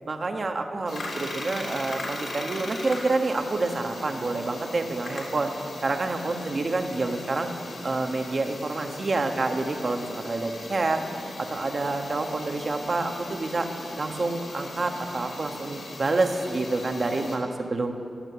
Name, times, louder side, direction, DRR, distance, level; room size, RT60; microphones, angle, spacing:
voice 1, 0.1-5.5 5.8-7.5 7.8-11.0 11.5-13.7 14.0-17.9, right 3 dB, 45° right, 5 dB, 1.3 m, -28 dB
sound 1, 0.9-17.4, left 2 dB, 60° left, 3.3 m, -38 dB
16.0 x 10.5 x 6.9 m, 2.8 s
wide cardioid pair, 95°, 0 cm